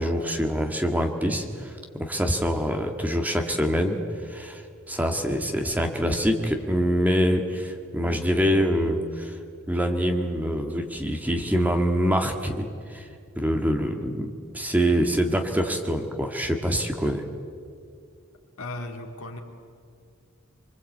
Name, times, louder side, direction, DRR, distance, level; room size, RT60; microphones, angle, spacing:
voice 1, 0.0-9.4 9.7-13.1 13.4-17.2, equal, 5° right, 3 dB, 1.7 m, -25 dB
voice 2, 18.6-19.4, left 2 dB, 75° left, 3 dB, 3.0 m, -36 dB
25.0 x 24.5 x 8.4 m, 2.3 s
head